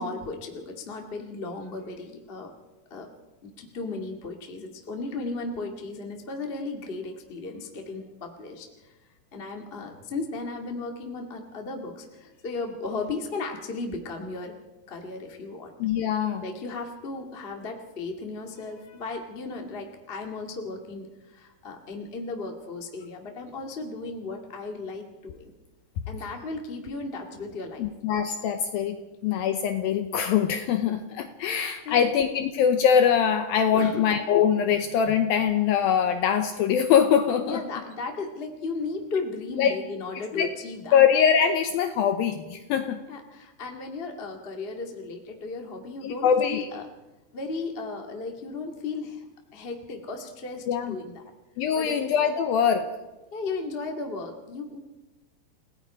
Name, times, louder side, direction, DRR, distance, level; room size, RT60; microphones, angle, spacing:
voice 1, 0.0-2.5 2.9-3.1 3.4-8.9 9.3-14.5 14.9-15.7 16.4-25.5 26.1-27.9 31.8-32.1 33.7-34.1 34.7-34.8 37.4-41.0 43.1-46.8 47.3-49.2 49.5-51.2 51.7-52.1 53.3-54.8, left 3 dB, 45° left, 2 dB, 0.7 m, -35 dB
voice 2, 15.8-16.4 27.8-29.0 29.2-37.6 39.6-39.7 40.3-40.5 40.9-43.0 46.0-46.7 50.7-51.0 51.6-52.9, left 8 dB, 75° left, 7 dB, 2.2 m, -23 dB
29.5 x 17.5 x 5.0 m, 1.1 s
omnidirectional pair, 5.1 m